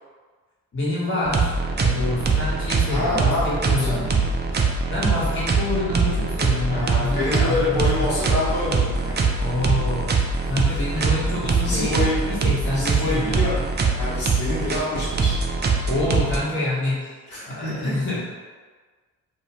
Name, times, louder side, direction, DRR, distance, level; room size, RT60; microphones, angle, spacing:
voice 1, 0.7-4.2 4.5-4.6 4.9-8.1 9.4-10.2 10.5-13.4 15.9-17.1 17.4-18.2, left 2 dB, 30° left, -7 dB, 1.2 m, -27 dB
sound 1, 1.3-16.4, right 4 dB, 25° right, 0.4 m, -23 dB
voice 2, 2.9-4.0 6.7-9.3 10.6-11.1 11.6-12.2 12.7-13.6 13.9-15.4 17.3-17.7, left 2 dB, 65° left, -10 dB, 1.1 m, -27 dB
2.5 x 2.2 x 2.9 m, 1.4 s
hypercardioid pair, 45°, 41 cm